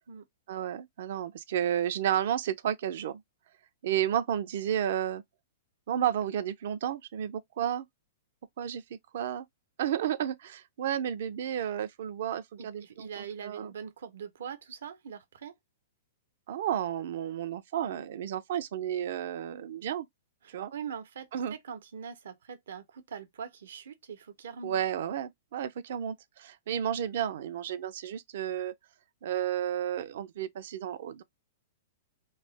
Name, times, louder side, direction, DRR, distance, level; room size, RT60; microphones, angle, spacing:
voice 1, 0.5-3.2 3.8-5.2 5.9-7.9 8.6-9.5 9.8-13.7 16.5-20.1 20.5-20.7 21.3-21.6 24.6-28.7 29.2-31.2, right 10 dB, 60° right, 0.5 m, -32 dB
voice 2, 12.6-15.5 20.4-24.8, right 7 dB, 80° right, 0.9 m, -42 dB
3.2 x 2.1 x 3.2 m
hypercardioid pair, 145°, 0 cm